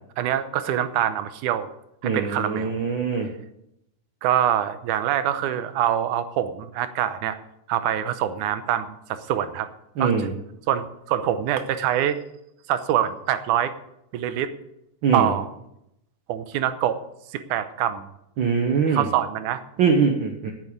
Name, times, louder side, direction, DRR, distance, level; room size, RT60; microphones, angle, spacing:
voice 1, 0.2-1.7 2.0-2.8 4.2-7.4 7.7-9.7 10.0-10.3 10.7-12.2 12.7-13.7 14.1-14.5 15.1-15.5 16.3-17.0 17.3-18.1 18.9-19.6, right 11 dB, 80° right, 11 dB, 2.2 m, -25 dB
voice 2, 2.0-3.3 10.0-10.3 15.0-15.3 18.4-19.1 19.8-20.5, right 5 dB, 65° right, 3 dB, 1.2 m, -22 dB
9.4 x 8.6 x 8.4 m, 0.80 s
omnidirectional pair, 3.6 m